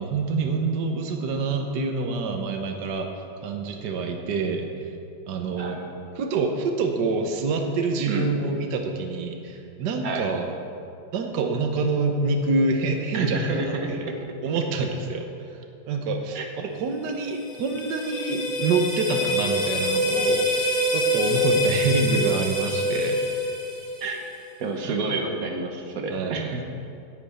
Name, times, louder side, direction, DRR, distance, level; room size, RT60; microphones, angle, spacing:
voice 1, 0.0-3.1 3.4-4.9 5.3-5.8 6.2-10.5 11.1-13.5 13.9-14.1 14.4-15.6 15.9-23.2 24.9-25.0 25.3-25.6 26.1-26.6, right 3 dB, 70° right, 3 dB, 1.5 m, -26 dB
voice 2, 5.6-6.0 8.1-8.3 10.0-10.3 13.1-14.3 16.3-16.5 24.0-24.3 24.6-26.6, right 3 dB, 55° right, 3 dB, 1.6 m, -29 dB
sound 1, 17.2-24.3, left 1 dB, 45° left, 3.2 m, -25 dB
9.6 x 6.9 x 8.9 m, 2.6 s
omnidirectional pair, 1.9 m